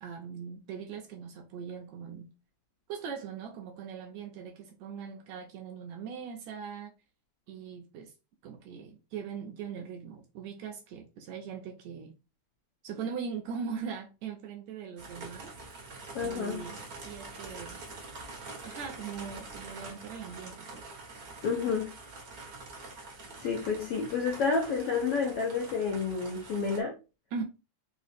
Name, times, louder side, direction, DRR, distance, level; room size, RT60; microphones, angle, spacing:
voice 1, 0.0-2.3 2.9-6.9 7.5-8.1 8.4-12.1 12.8-15.5 16.2-17.8 18.4-20.8 27.3-27.4, right 6 dB, 80° right, 1.7 m, -40 dB
sound 1, 15.0-26.8, right 3 dB, 55° right, 1.0 m, -45 dB
voice 2, 16.1-16.6 21.4-21.9 23.4-27.0, left 5 dB, 75° left, 1.3 m, -30 dB
4.9 x 2.0 x 4.1 m
omnidirectional pair, 3.5 m